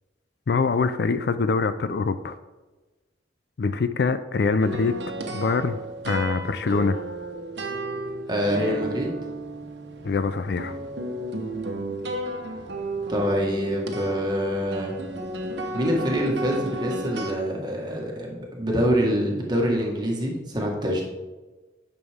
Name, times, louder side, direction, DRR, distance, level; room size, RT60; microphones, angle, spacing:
voice 1, 0.5-2.4 3.6-5.0 5.3-5.8 6.1-7.0 10.0-10.8, left 4 dB, 60° left, 12 dB, 0.4 m, -24 dB
sound 1, 4.6-17.3, right 1 dB, 75° right, 1.2 m, -33 dB
voice 2, 8.3-9.1 13.1-15.0 15.7-21.0, equal, 25° right, -1 dB, 1.6 m, -25 dB
9.6 x 6.1 x 3.6 m, 1.2 s
head